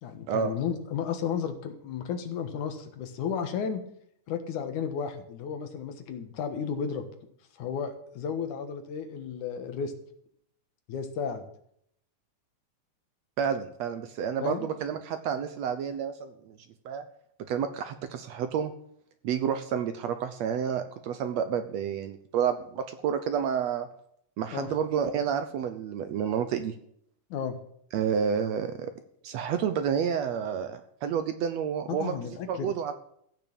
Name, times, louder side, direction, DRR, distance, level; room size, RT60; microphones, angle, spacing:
voice 1, 0.0-3.8 4.3-7.1 7.6-9.9 10.9-11.4 14.4-14.7 24.5-24.7 27.3-27.6 31.9-32.7, left 7 dB, 70° left, 7 dB, 2.8 m, -33 dB
voice 2, 13.4-16.6 16.9-17.0 17.5-18.7 19.2-23.9 24.4-26.8 27.9-28.9 29.2-32.9, right 7 dB, 70° right, 9 dB, 1.8 m, -30 dB
15.0 x 6.3 x 8.8 m, 0.68 s
omnidirectional pair, 3.7 m